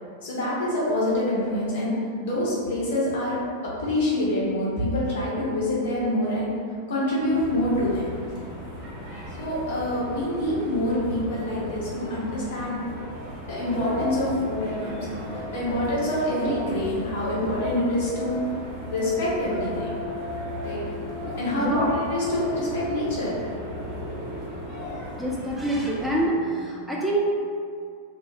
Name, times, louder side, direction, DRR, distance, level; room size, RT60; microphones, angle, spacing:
voice 1, 0.2-6.5 6.9-8.0 9.4-12.9 13.5-18.4 18.9-19.9 20.6-20.8 21.4-23.4, left 1 dB, 60° left, -7 dB, 0.9 m, -26 dB
sound 1, 7.3-26.2, equal, 35° right, 1.0 m, -38 dB
sound 2, 13.4-25.2, left 1 dB, 65° right, 1.3 m, -37 dB
voice 2, 21.5-22.0 25.2-27.3, right 1 dB, ahead, -5 dB, 0.3 m, -26 dB
2.8 x 2.1 x 3.2 m, 2.2 s
figure-of-eight pair, 90°, 0 cm